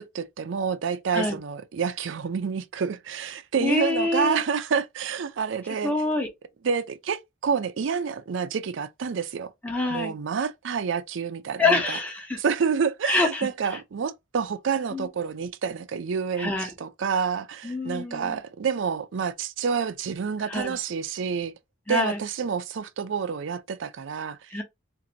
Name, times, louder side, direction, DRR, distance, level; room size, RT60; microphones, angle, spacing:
voice 1, 0.0-5.9 6.6-9.5 9.9-12.0 12.4-21.5 21.9-24.5, right 6 dB, 70° right, 0.4 m, -28 dB
voice 2, 3.6-4.4 5.8-6.3 9.6-10.1 11.6-12.4 13.0-13.8 14.9-15.1 16.4-16.7 17.6-18.4 20.4-20.8 21.9-22.2 24.5-24.6, left 3 dB, 10° left, 0.8 m, -26 dB
2.6 x 2.6 x 3.8 m
head